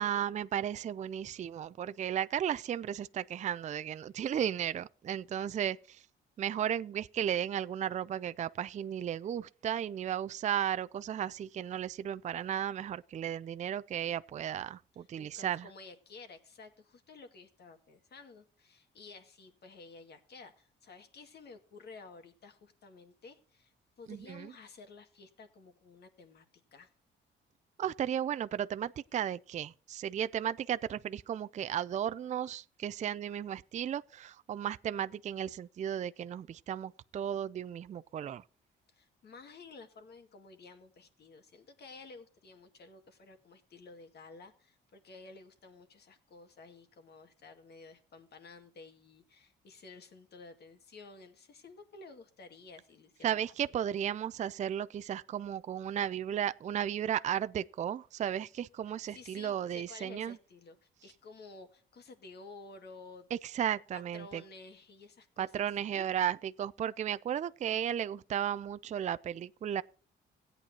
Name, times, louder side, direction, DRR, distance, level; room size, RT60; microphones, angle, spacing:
voice 1, 0.0-6.0 6.4-15.7 24.1-24.5 27.8-38.4 53.2-60.4 63.3-64.4 65.4-69.8, right 10 dB, 35° right, 0.4 m, -34 dB
voice 2, 15.2-26.5 26.7-26.9 38.9-53.4 59.1-63.3 63.9-65.7 65.9-66.1, left 3 dB, 55° left, 2.0 m, -53 dB
16.5 x 9.0 x 2.8 m
cardioid pair, 90°, 20 cm